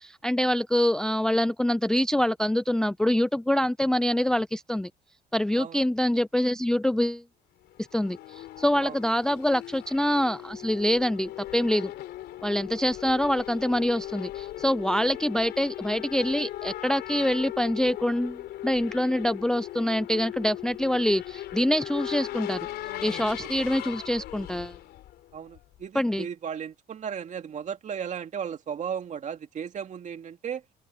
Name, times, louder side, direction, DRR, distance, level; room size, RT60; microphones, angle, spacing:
voice 1, 0.0-4.9 5.3-7.2 7.9-11.9 12.4-22.7 23.0-24.8 25.9-26.3, left 1 dB, 5° left, 0.4 m, -25 dB
Race car auto racing / Accelerating revving vroom, 7.6-25.8, left 14 dB, 75° left, 4.2 m, -38 dB
voice 2, 25.3-30.6, right 8 dB, 45° right, 2.4 m, -35 dB
open air
cardioid pair, 110°, 17 cm